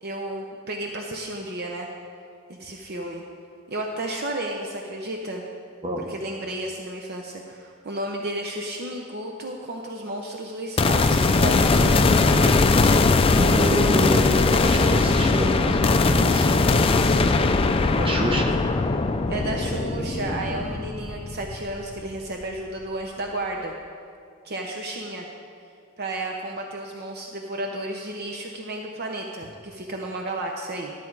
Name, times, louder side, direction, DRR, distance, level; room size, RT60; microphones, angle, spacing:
voice 1, 0.0-1.9 2.5-3.2 3.7-5.4 6.1-12.7 18.4-18.6 19.3-23.7 24.4-25.3 26.0-30.9, right 1 dB, 50° right, 1 dB, 0.7 m, -32 dB
sound 1, 10.8-22.1, left 3 dB, 25° left, 0.4 m, -20 dB
voice 2, 13.3-16.7 17.8-18.5 20.2-20.6, equal, 25° right, 1 dB, 1.1 m, -27 dB
12.0 x 8.5 x 4.7 m, 2.4 s
head